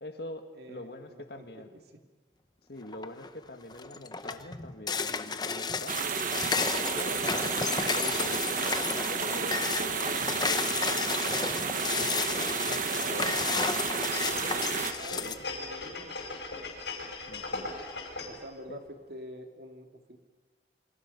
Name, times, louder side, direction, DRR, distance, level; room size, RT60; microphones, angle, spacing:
voice 1, 0.0-1.7 2.7-6.0 6.7-13.8 14.4-14.8 15.1-15.5 17.3-17.7 18.7-18.8, left 1 dB, 60° left, 6 dB, 2.0 m, -44 dB
voice 2, 0.5-1.7 1.9-2.0 12.8-13.6 15.0-16.3 18.3-20.2, right 1 dB, 65° right, 4 dB, 2.3 m, -46 dB
sound 1, 2.9-3.3 3.7-15.4, left 5 dB, 25° left, 0.8 m, -32 dB
sound 2, 5.9-14.9, right 5 dB, 45° right, 1.2 m, -31 dB
sound 3, 14.1-18.5 18.9-19.0, left 3 dB, 80° left, 5.5 m, -39 dB
27.5 x 24.5 x 5.5 m, 1.3 s
head